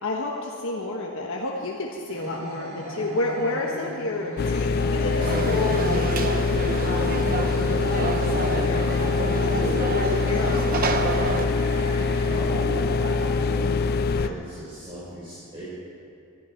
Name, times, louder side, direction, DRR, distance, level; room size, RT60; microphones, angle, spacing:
voice 1, 0.0-6.2 6.8-9.5 9.9-11.2 14.1-14.4, left 2 dB, 65° left, -1 dB, 1.3 m, -31 dB
sound 1, 2.1-14.3, equal, 75° right, 3.8 m, -37 dB
sound 2, 4.4-14.3, left 4 dB, 45° left, 0.3 m, -24 dB
Conversation / Crowd, 5.2-11.4, right 3 dB, 40° right, 0.9 m, -28 dB
voice 2, 12.3-15.7, right 1 dB, 25° right, -9 dB, 4.8 m, -36 dB
23.0 x 14.0 x 4.6 m, 2.5 s
head